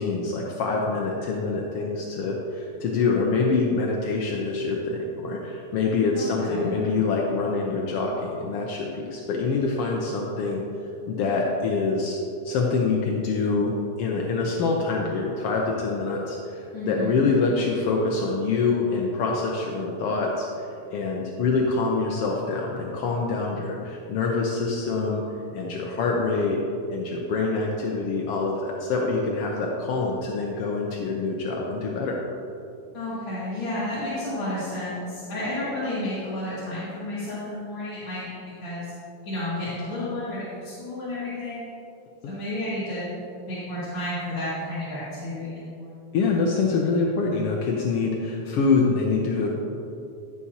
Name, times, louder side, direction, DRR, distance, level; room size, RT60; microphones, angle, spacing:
voice 1, 0.0-10.6 11.1-25.2 25.5-26.6 26.9-32.2 46.1-49.5, left 4 dB, 85° left, -1 dB, 1.3 m, -25 dB
voice 2, 6.2-6.7 16.7-17.2 32.9-38.9 39.2-41.6 42.3-43.0 43.4-45.9, left 1 dB, 45° left, -11 dB, 2.4 m, -31 dB
14.0 x 7.0 x 2.8 m, 2.7 s
omnidirectional pair, 3.6 m